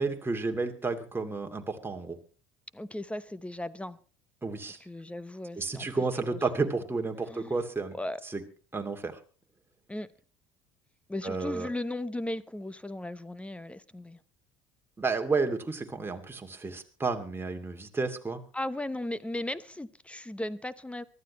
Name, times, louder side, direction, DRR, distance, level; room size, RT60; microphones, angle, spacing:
voice 1, 0.0-2.2 4.4-4.8 5.6-7.9 8.3-8.4 8.7-9.2 11.2-11.7 15.0-18.4, right 3 dB, 15° right, 2.5 m, -31 dB
voice 2, 2.7-4.0 4.8-5.9 6.2-6.4 7.3-7.6 7.9-8.2 9.9-10.1 11.1-14.2 18.5-21.0, left 1 dB, 10° left, 0.9 m, -36 dB
24.0 x 13.0 x 3.1 m
hypercardioid pair, 65°, 16 cm